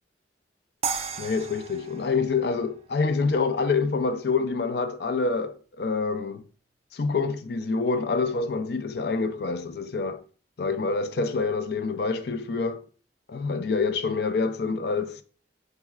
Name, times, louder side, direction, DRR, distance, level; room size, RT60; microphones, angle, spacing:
sound 1, 0.8-3.9, right 6 dB, 35° right, 0.3 m, -36 dB
voice 1, 1.2-6.4 6.9-10.2 10.6-12.8 13.3-15.2, left 4 dB, 60° left, 0.4 m, -26 dB
7.1 x 2.7 x 2.4 m
head